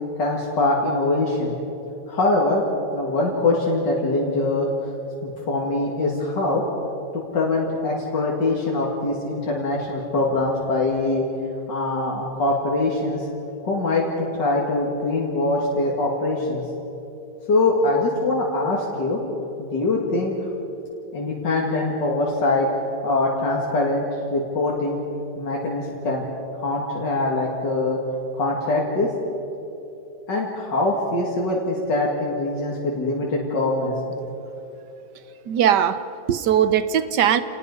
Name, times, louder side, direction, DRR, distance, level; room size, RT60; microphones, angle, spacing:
voice 1, 0.2-1.6 2.1-2.6 2.9-4.9 5.2-6.6 7.3-11.2 11.7-13.2 13.6-14.0 14.3-16.6 17.5-19.2 19.6-20.4 21.1-22.7 23.0-24.0 24.3-25.0 25.4-26.2 26.6-28.0 28.3-29.1 30.3-33.9, left 2 dB, 85° left, -3 dB, 2.9 m, -23 dB
voice 2, 35.5-37.4, right 9 dB, 75° right, 12 dB, 1.5 m, -20 dB
29.0 x 19.0 x 5.5 m, 2.9 s
omnidirectional pair, 1.9 m